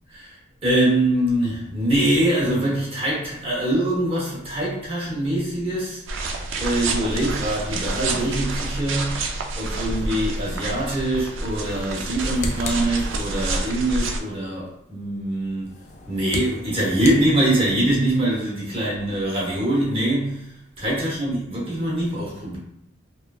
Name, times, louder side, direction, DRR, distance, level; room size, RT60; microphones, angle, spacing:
voice 1, 0.1-6.0 6.6-9.2 9.5-15.7 16.1-22.6, right 1 dB, 30° right, -5 dB, 0.9 m, -23 dB
sound 1, 6.1-14.2, right 2 dB, 70° right, 0.4 m, -28 dB
sound 2, 12.0-13.6 15.6-17.9, left 3 dB, 35° left, 0.3 m, -36 dB
3.0 x 2.3 x 2.3 m, 0.79 s
head